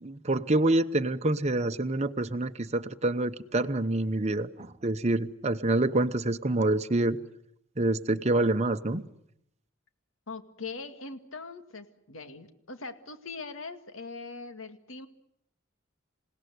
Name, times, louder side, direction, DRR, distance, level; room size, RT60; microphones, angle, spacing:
voice 1, 0.0-7.2 7.8-9.0, right 2 dB, 35° right, 8 dB, 0.9 m, -27 dB
voice 2, 10.3-15.1, left 4 dB, 80° left, 8 dB, 2.2 m, -41 dB
28.0 x 17.5 x 9.4 m, 0.77 s
head